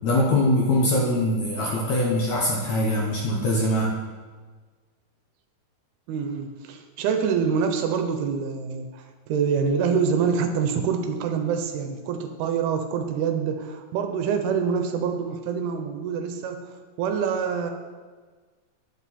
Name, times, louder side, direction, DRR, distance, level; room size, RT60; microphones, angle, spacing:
voice 1, 0.0-3.9, left 1 dB, 70° left, -2 dB, 1.7 m, -22 dB
voice 2, 6.1-16.6 17.0-17.7, right 6 dB, 80° right, 6 dB, 2.5 m, -26 dB
9.2 x 8.5 x 4.2 m, 1.4 s
omnidirectional pair, 4.8 m